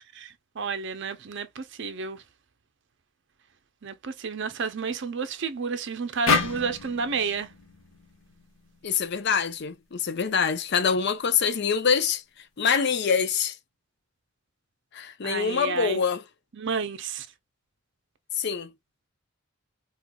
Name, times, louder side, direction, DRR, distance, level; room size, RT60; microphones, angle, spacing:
voice 1, 0.0-2.2 3.8-7.5 15.2-16.0 16.6-17.3, right 5 dB, 55° right, 0.5 m, -31 dB
sound 1, 6.3-9.5, left 4 dB, 75° left, 1.0 m, -29 dB
voice 2, 8.8-12.2 12.6-13.6 14.9-16.2 18.4-18.7, left 6 dB, 55° left, 0.5 m, -25 dB
4.4 x 2.4 x 2.2 m
head